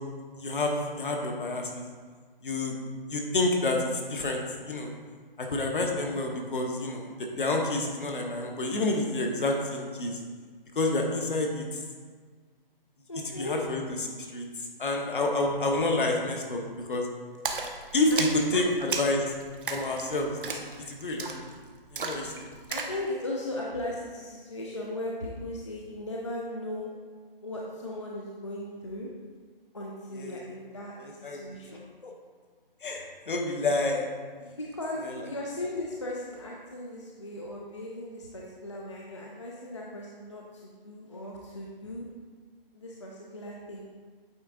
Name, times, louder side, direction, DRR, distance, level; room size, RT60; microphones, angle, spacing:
voice 1, 0.4-1.8 2.4-2.8 3.1-4.9 5.4-10.2 10.7-11.8 13.4-13.8 14.3-17.1 17.9-19.3 19.7-21.5 21.9-22.5 30.1-30.4 31.0-31.4 32.0-32.1 32.8-34.1 35.0-35.2, left 2 dB, 60° left, 1 dB, 1.2 m, -29 dB
voice 2, 13.1-13.6 18.1-18.6 22.7-26.9 27.4-29.1 29.7-31.8 34.6-42.1 42.7-43.8, left 1 dB, 30° left, -3 dB, 0.5 m, -37 dB
Splash splatter, 17.4-23.0, right 4 dB, 60° right, 0.8 m, -35 dB
8.7 x 3.5 x 3.9 m, 1.6 s
hypercardioid pair, 175°, 29 cm